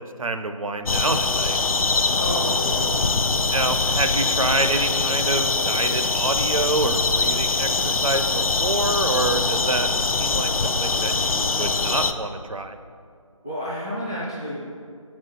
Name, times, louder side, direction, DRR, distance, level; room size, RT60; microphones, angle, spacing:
voice 1, 0.0-1.6 3.5-9.9 10.2-12.8, right 2 dB, 75° right, 8 dB, 0.6 m, -27 dB
sound 1, 0.8-12.1, left 3 dB, 85° left, 0.5 m, -23 dB
voice 2, 2.1-3.3 13.4-14.6, equal, 10° left, -8 dB, 0.4 m, -30 dB
6.0 x 4.3 x 6.1 m, 2.2 s
figure-of-eight pair, 160°, 18 cm